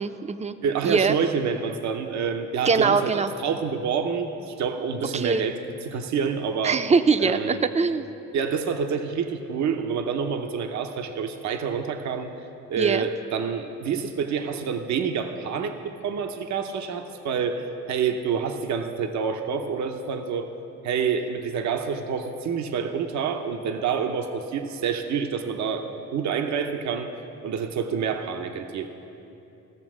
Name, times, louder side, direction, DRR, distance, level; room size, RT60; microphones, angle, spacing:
voice 1, 0.0-0.5 0.8-1.1 2.6-3.3 5.1-5.4 6.6-8.1 12.8-13.0, right 5 dB, 25° right, 11 dB, 0.5 m, -22 dB
voice 2, 0.6-6.8 7.2-7.6 8.3-12.3 12.7-20.5 20.8-27.1 27.4-28.9, right 6 dB, 70° right, 6 dB, 0.8 m, -28 dB
15.5 x 7.0 x 6.1 m, 2.9 s
cardioid pair, 90°, 30 cm